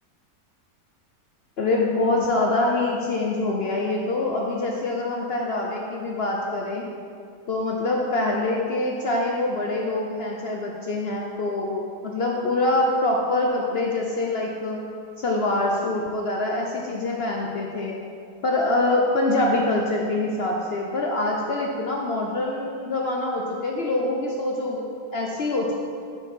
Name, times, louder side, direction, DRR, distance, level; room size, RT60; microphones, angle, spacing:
voice 1, 1.6-6.9 7.5-14.8 15.2-18.0 18.4-25.7, left 2 dB, 65° left, -1 dB, 0.6 m, -25 dB
6.2 x 5.8 x 5.3 m, 2.4 s
omnidirectional pair, 1.8 m